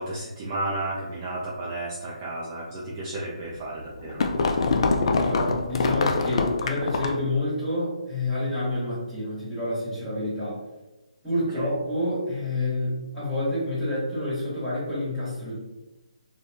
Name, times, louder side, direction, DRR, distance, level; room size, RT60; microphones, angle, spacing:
voice 1, 0.0-4.2 11.5-11.7, right 1 dB, 25° right, -6 dB, 0.5 m, -32 dB
sound 1, 3.5-7.3, left 4 dB, 50° left, 0.3 m, -24 dB
voice 2, 5.2-10.6 11.2-15.6, left 1 dB, ahead, -14 dB, 1.5 m, -28 dB
3.4 x 2.2 x 2.7 m, 1.0 s
hypercardioid pair, 155°, 4 cm